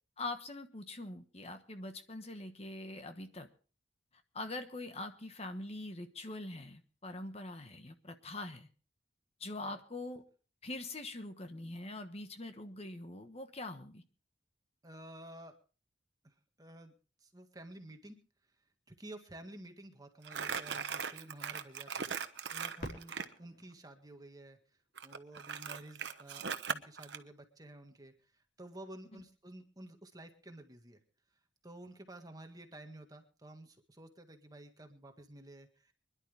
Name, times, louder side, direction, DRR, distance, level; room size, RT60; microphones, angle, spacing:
voice 1, 0.2-3.5 4.3-8.7 9.4-10.2 10.6-14.0, left 2 dB, 35° left, 8 dB, 1.2 m, -43 dB
voice 2, 14.8-15.6 16.2-16.9 17.2-18.2 18.9-23.1 23.4-24.6 25.0-31.0 31.6-35.9, right 1 dB, 20° right, 6 dB, 1.8 m, -52 dB
Crumpling crinkling, 20.2-23.3 25.0-27.2, right 6 dB, 65° right, 1.1 m, -39 dB
Fireworks, 22.8-25.5 26.2-26.3 27.0-27.5 29.4-29.5, equal, 50° left, 4.5 m, -50 dB
25.5 x 11.5 x 3.4 m, 0.37 s
head